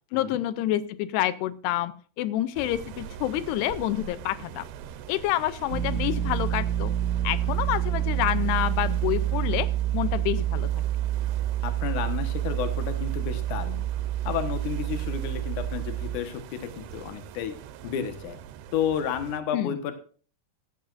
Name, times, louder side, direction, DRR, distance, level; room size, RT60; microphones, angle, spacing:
voice 1, 0.1-4.7 5.1-6.9 7.2-10.7 19.5-19.8, left 14 dB, 90° left, 15 dB, 2.8 m, -28 dB
sound 1, 2.6-19.4, right 9 dB, 80° right, 2.7 m, -43 dB
sound 2, 5.7-16.2, right 12 dB, 60° right, 2.4 m, -28 dB
voice 2, 11.6-13.9 14.2-17.6 17.8-18.4 18.7-19.9, left 8 dB, 60° left, 9 dB, 2.4 m, -31 dB
15.5 x 11.5 x 2.6 m, 0.40 s
omnidirectional pair, 4.7 m